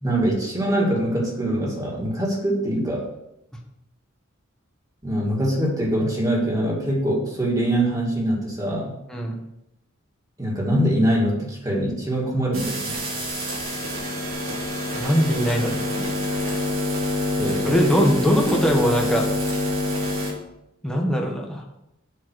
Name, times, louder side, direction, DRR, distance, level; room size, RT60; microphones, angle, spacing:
voice 1, 0.0-3.1 5.0-8.9 10.4-13.0 17.4-17.8, right 1 dB, 15° right, -3 dB, 2.3 m, -23 dB
sound 1, 12.5-20.3, left 1 dB, 70° right, 2.9 m, -26 dB
voice 2, 14.9-16.1 17.6-19.3 20.8-21.6, equal, 5° left, 0 dB, 1.5 m, -21 dB
7.9 x 5.9 x 6.3 m, 0.84 s
head